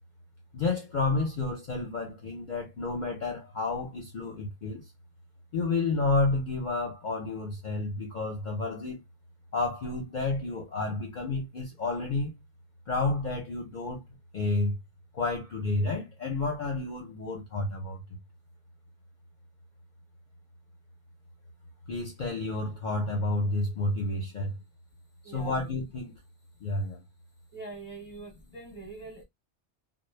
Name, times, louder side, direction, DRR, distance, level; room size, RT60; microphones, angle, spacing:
voice 1, 0.5-4.9 5.5-9.0 9.5-12.3 12.9-14.0 14.3-14.8 15.1-18.0 21.9-24.5 25.3-26.1 26.6-27.0, left 3 dB, 50° left, 0.6 m, -30 dB
voice 2, 25.2-25.7 27.5-29.2, right 3 dB, 10° right, 0.7 m, -43 dB
2.1 x 2.0 x 3.1 m
omnidirectional pair, 1.2 m